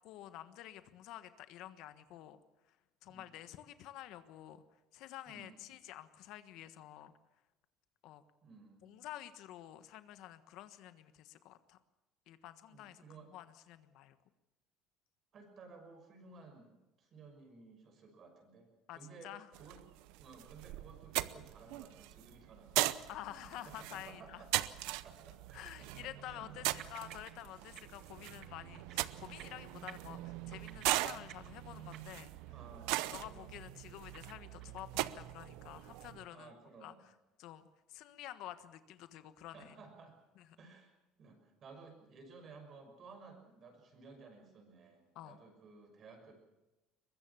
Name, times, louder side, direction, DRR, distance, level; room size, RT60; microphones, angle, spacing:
voice 1, 0.0-2.8 3.0-4.6 4.9-7.1 8.0-8.2 8.8-11.8 12.3-13.0 13.3-14.2 18.9-19.5 23.1-24.4 25.5-32.6 33.1-36.5 36.8-36.9 37.4-39.8 40.3-40.5 45.1-45.4, left 13 dB, 65° left, 11 dB, 1.3 m, -50 dB
voice 2, 5.3-5.6 8.4-9.0 12.7-13.3 15.3-18.7 18.9-19.3 19.6-19.8 20.2-23.1 23.6-25.9 26.2-26.8 32.5-33.6 36.3-37.0 39.5-40.2 40.6-40.9 41.2-46.3, right 4 dB, 40° right, 5 dB, 6.2 m, -56 dB
sound 1, 19.5-36.2, right 18 dB, 85° right, 0.7 m, -40 dB
sound 2, 20.6-20.8 21.1-21.2 21.8-21.9 25.1-25.2 25.8-26.5 26.8-27.3 27.6-27.8 28.1-29.1 29.4-29.6 29.9-32.5 32.7-32.9 33.2-33.6 33.8-35.0, right 11 dB, 55° right, 1.7 m, -54 dB
22.5 x 21.5 x 7.1 m, 1.0 s
cardioid pair, 145°, 0 cm